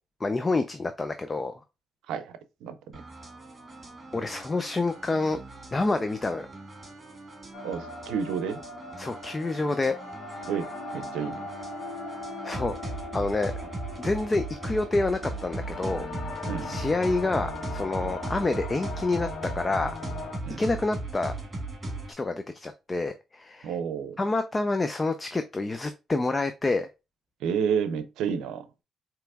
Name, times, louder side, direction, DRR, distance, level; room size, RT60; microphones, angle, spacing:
voice 1, 0.2-1.5 4.1-5.4 5.7-6.5 9.0-9.9 12.4-12.8 13.1-13.5 14.0-16.1 16.3-19.3 19.5-19.9 20.6-21.3 22.1-23.8 24.2-26.9, left 3 dB, 25° left, 0.4 m, -28 dB
voice 2, 2.6-3.0 7.6-8.6 10.5-11.5 16.5-16.8 20.4-20.6 23.6-24.2 27.4-28.7, right 7 dB, 90° right, 0.6 m, -30 dB
sound 1, 2.9-22.1, right 2 dB, 25° right, 1.8 m, -38 dB
sound 2, 7.5-20.4, left 3 dB, 65° left, 1.0 m, -39 dB
4.2 x 3.0 x 3.5 m
cardioid pair, 90°, 0 cm